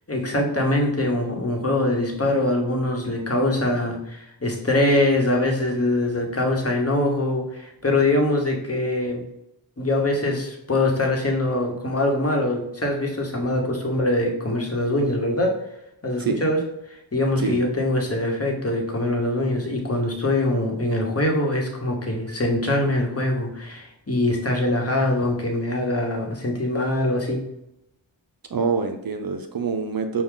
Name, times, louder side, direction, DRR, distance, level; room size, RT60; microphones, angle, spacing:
voice 1, 0.1-9.2 9.8-15.6 16.0-16.6 17.1-27.4, left 1 dB, 30° left, 0 dB, 1.1 m, -23 dB
voice 2, 28.5-30.2, right 5 dB, 50° right, 6 dB, 0.6 m, -25 dB
6.0 x 2.3 x 3.7 m, 0.81 s
wide cardioid pair, 65°, 44 cm